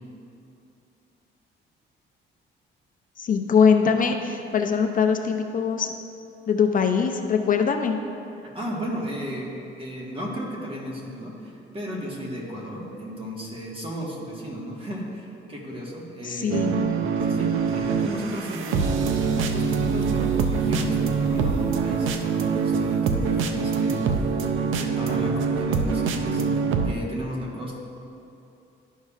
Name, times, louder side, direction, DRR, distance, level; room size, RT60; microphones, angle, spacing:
voice 1, 3.2-5.9 6.5-8.0 16.2-16.9, left 6 dB, 45° left, 5 dB, 0.5 m, -22 dB
voice 2, 8.5-9.5 9.8-16.6 17.2-24.3 24.7-27.8, equal, 25° right, -2 dB, 1.5 m, -34 dB
sound 1, 16.5-26.9, right 5 dB, 85° right, 0.5 m, -24 dB
11.5 x 5.5 x 2.4 m, 2.7 s
cardioid pair, 90°, 20 cm